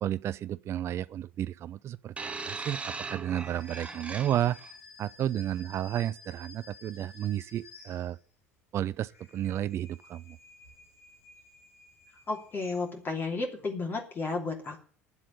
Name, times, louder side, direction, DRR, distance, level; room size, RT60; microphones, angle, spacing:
voice 1, 0.0-4.6 5.0-8.2 8.7-10.4, right 11 dB, 40° right, 0.5 m, -32 dB
sound 1, 2.2-4.7 5.6-5.8, right 4 dB, 15° right, 1.2 m, -39 dB
sound 2, 3.2-8.5 8.9-13.2, left 3 dB, 80° left, 3.2 m, -53 dB
voice 2, 12.3-14.9, left 3 dB, 30° left, 3.0 m, -33 dB
10.0 x 7.5 x 9.4 m
figure-of-eight pair, 65°, 7 cm